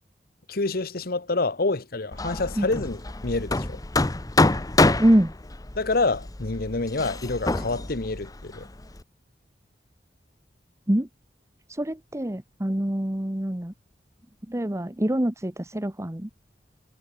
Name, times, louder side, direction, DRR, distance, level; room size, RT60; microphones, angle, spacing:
voice 1, 0.5-3.8 5.8-8.7, left 3 dB, 60° left, 1.2 m, -27 dB
Hammer, 2.1-9.0, left 2 dB, 20° left, 0.9 m, -26 dB
voice 2, 5.0-5.3 10.9-11.1 11.7-13.7 14.5-16.3, right 1 dB, 15° right, 1.1 m, -24 dB
head